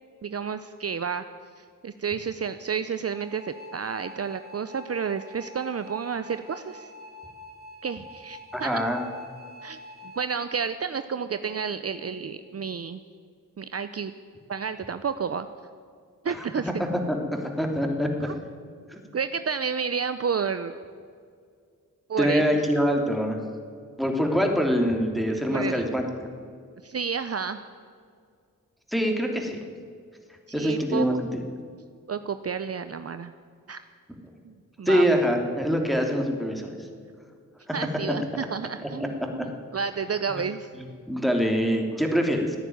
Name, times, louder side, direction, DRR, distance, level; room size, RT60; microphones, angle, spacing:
voice 1, 0.2-1.3 1.6-6.9 7.8-8.9 9.6-9.8 10.0-13.0 13.6-14.1 14.5-15.5 16.2-16.8 18.2-18.3 19.1-20.8 22.1-22.6 25.5-25.8 26.8-27.6 30.5-31.1 32.1-33.3 33.7-33.8 34.4-35.1 37.7-40.7, right 6 dB, 45° right, 11 dB, 0.7 m, -31 dB
sound 1, 3.1-10.3, left 2 dB, 30° right, 2.7 m, -46 dB
voice 2, 8.5-9.0 16.3-16.4 17.1-18.3 18.9-19.0 22.2-23.4 24.0-26.0 28.9-29.6 30.5-31.3 34.8-36.7 39.0-39.1 41.1-42.6, equal, ahead, 2 dB, 3.0 m, -24 dB
15.5 x 9.9 x 9.4 m, 2.2 s
cardioid pair, 45°, 33 cm